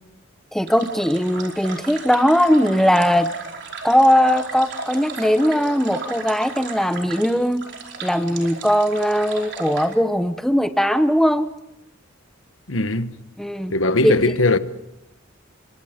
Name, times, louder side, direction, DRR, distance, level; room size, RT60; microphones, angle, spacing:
voice 1, 0.5-3.3 3.8-7.6 8.0-11.5 13.4-13.7 14.0-14.1, equal, ahead, 0.8 m, -19 dB
sound 1, 0.7-9.9, right 4 dB, 55° right, 4.8 m, -35 dB
voice 2, 12.7-13.1 13.7-14.6, left 2 dB, 80° left, 1.2 m, -19 dB
29.0 x 25.5 x 5.2 m
head